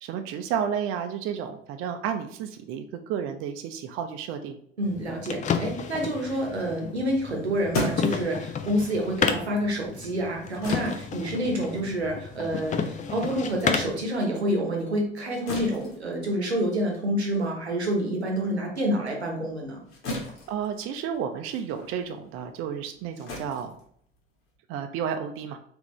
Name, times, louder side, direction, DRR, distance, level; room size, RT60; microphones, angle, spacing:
voice 1, 0.0-4.6 20.5-23.7 24.7-25.6, right 8 dB, 45° right, 7 dB, 0.5 m, -31 dB
sound 1, 4.8-14.1, left 6 dB, 25° left, 0.4 m, -32 dB
voice 2, 4.8-19.8, equal, 85° right, 0 dB, 0.9 m, -28 dB
sound 2, 7.2-14.0 14.4-24.6, left 1 dB, 45° left, 1.4 m, -38 dB
3.6 x 3.4 x 3.1 m, 0.64 s
figure-of-eight pair, 60°, 32 cm